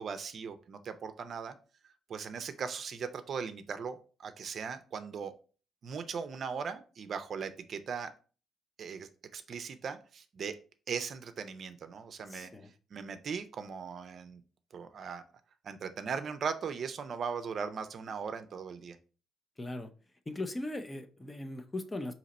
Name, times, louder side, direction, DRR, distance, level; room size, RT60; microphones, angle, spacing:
voice 1, 0.0-1.6 2.1-5.3 5.8-8.1 8.8-10.6 10.9-12.5 12.9-14.4 14.7-15.2 15.6-19.0, right 6 dB, 55° right, 0.5 m, -39 dB
voice 2, 12.3-12.7 19.6-19.9 20.3-22.1, left 2 dB, 20° left, 0.5 m, -39 dB
4.0 x 2.9 x 4.1 m
cardioid pair, 90°, 0 cm